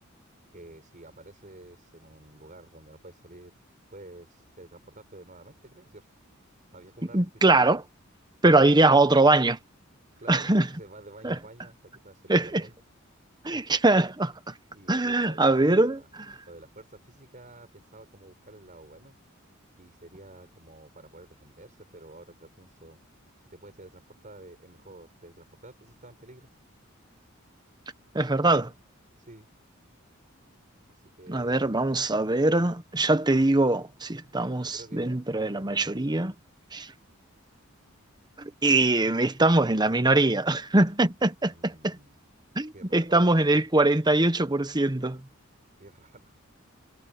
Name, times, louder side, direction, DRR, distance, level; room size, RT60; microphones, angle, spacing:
voice 1, 0.5-3.5 3.9-6.1 6.7-7.6 10.2-12.7 13.4-13.7 14.7-16.1 16.5-19.2 19.7-23.0 23.4-26.5 29.2-29.5 30.9-32.1 32.4-32.6 34.6-36.3 41.4-42.2 42.7-43.5 45.8-46.5, right 2 dB, 40° right, 5.7 m, -50 dB
voice 2, 7.1-7.8 8.4-9.6 10.3-10.7 11.2-11.3 12.3-12.6 13.4-14.5 14.9-16.0 28.1-28.7 31.3-36.3 36.7-36.9 38.4-42.0 42.6-45.2, right 2 dB, 20° right, 1.1 m, -22 dB
head